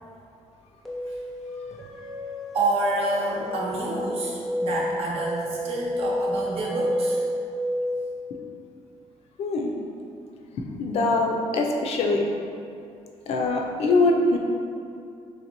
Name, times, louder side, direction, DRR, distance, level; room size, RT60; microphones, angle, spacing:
sound 1, 0.8-8.0, equal, ahead, 0.5 m, -30 dB
voice 1, 2.5-7.2, right 2 dB, 55° right, -3 dB, 0.7 m, -28 dB
voice 2, 9.4-9.7 10.8-12.2 13.3-14.4, left 2 dB, 60° left, 1 dB, 0.4 m, -23 dB
3.9 x 3.2 x 2.9 m, 2.5 s
cardioid pair, 150°, 12 cm